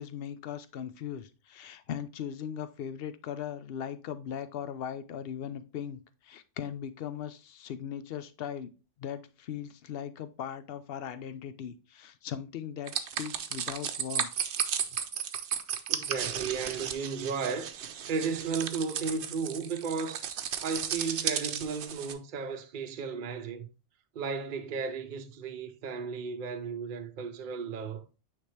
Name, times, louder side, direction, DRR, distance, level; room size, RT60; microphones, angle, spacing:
voice 1, 0.0-8.7 9.0-14.5, left 9 dB, 60° left, 0.8 m, -39 dB
sound 1, 12.9-22.1, right 8 dB, 75° right, 0.9 m, -34 dB
voice 2, 15.9-17.7 18.1-20.3 20.6-23.7 24.1-28.0, right 5 dB, 50° right, 0.7 m, -34 dB
9.0 x 3.5 x 3.3 m
omnidirectional pair, 1.2 m